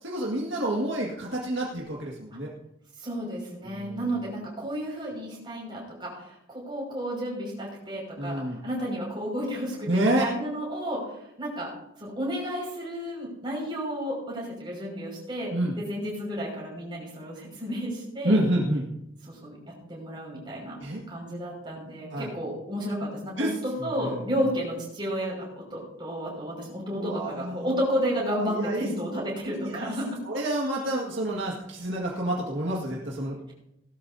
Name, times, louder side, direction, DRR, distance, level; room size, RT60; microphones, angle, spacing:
voice 1, 0.0-2.5 3.6-4.0 8.2-8.6 9.9-10.3 15.5-15.7 18.2-18.8 20.8-21.0 22.1-22.3 23.4-23.5 24.0-24.2 26.9-27.6 28.3-28.9 29.6-29.9 30.3-33.5, right 1 dB, 65° right, -3 dB, 1.9 m, -28 dB
voice 2, 3.0-11.7 12.0-18.4 19.3-19.6 19.9-20.8 21.1-30.2, equal, 25° right, -3 dB, 5.7 m, -32 dB
18.0 x 12.5 x 2.8 m, 0.86 s
head